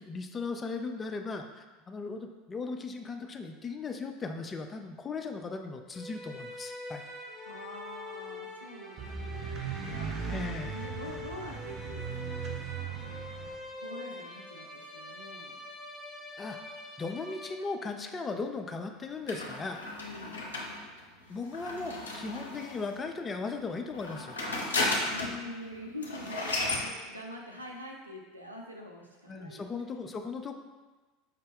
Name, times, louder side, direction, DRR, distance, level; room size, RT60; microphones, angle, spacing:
voice 1, 0.0-7.0 10.3-10.7 16.4-16.6 17.0-19.8 21.3-24.4 29.3-30.5, left 4 dB, 25° left, 5 dB, 0.4 m, -37 dB
sound 1, 5.9-18.0, left 2 dB, 10° right, 1.0 m, -44 dB
voice 2, 7.5-10.2 10.7-13.3 13.8-15.6 20.0-20.5 25.1-30.2, left 1 dB, 90° right, 0 dB, 0.5 m, -45 dB
sound 2, 9.0-13.6, right 7 dB, 35° right, 0.7 m, -38 dB
sound 3, 19.3-22.9 23.9-25.4 25.7-25.8 26.0-26.9, left 2 dB, 80° left, 0.6 m, -34 dB
5.1 x 2.1 x 3.5 m, 1.3 s
figure-of-eight pair, 75°, 0 cm